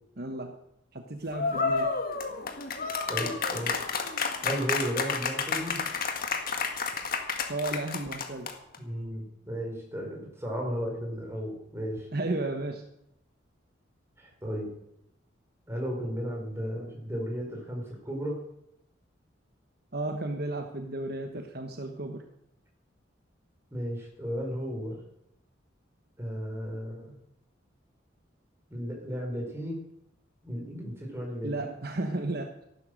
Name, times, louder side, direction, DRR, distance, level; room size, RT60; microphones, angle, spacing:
voice 1, 0.2-0.6 0.9-2.0 7.5-8.5 12.1-12.8 19.9-22.2 31.4-32.6, right 2 dB, 50° right, 5 dB, 1.2 m, -33 dB
sound 1, 1.3-8.8, left 5 dB, 45° left, 1.8 m, -30 dB
voice 2, 3.1-3.8 4.4-5.8 8.8-12.1 14.2-14.7 15.7-18.4 23.7-25.0 26.2-27.2 28.7-29.8 30.4-31.5, equal, 15° right, 0 dB, 4.5 m, -34 dB
14.0 x 11.5 x 6.4 m, 0.80 s
head